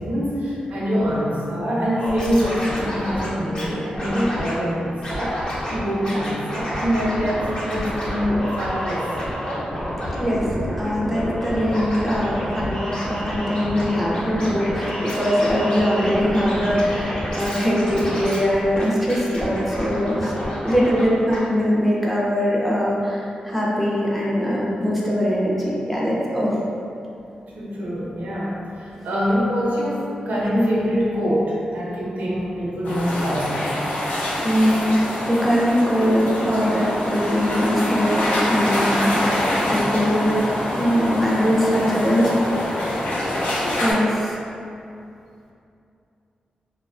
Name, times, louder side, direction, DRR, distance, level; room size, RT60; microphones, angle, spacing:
voice 1, 0.0-5.4 5.7-9.1 27.6-28.5 28.8-33.8, equal, 85° right, -6 dB, 0.5 m, -24 dB
Scratching (performance technique), 2.0-3.7 4.0-4.6 5.0-5.8 6.0-21.1 21.3-21.4, equal, 45° left, 0.7 m, -29 dB
voice 2, 10.8-20.3 20.6-26.5 34.4-35.0 35.3-39.1 39.7-40.3 40.8-42.3 42.6-42.8 43.8-44.3, equal, ahead, -6 dB, 0.4 m, -21 dB
sound 1, 32.8-43.9, left 1 dB, 90° left, 0.5 m, -25 dB
2.7 x 2.1 x 2.4 m, 2.6 s
wide cardioid pair, 135°, 3 cm